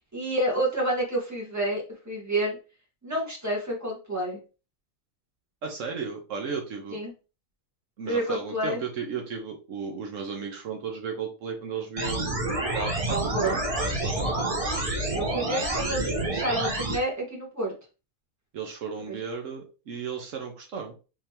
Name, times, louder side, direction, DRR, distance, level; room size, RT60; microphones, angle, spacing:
voice 1, 0.1-2.6 3.0-4.4 6.9-7.1 8.0-8.8 13.1-13.5 15.1-17.7 19.1-19.2, right 1 dB, 15° right, -3 dB, 1.5 m, -29 dB
voice 2, 5.6-7.0 8.0-12.4 12.7-14.5 14.7-15.2 18.5-20.9, right 5 dB, 70° right, 2 dB, 1.1 m, -35 dB
sound 1, 12.0-17.0, right 2 dB, 30° right, 0.9 m, -28 dB
3.8 x 3.3 x 2.9 m, 0.33 s
omnidirectional pair, 1.4 m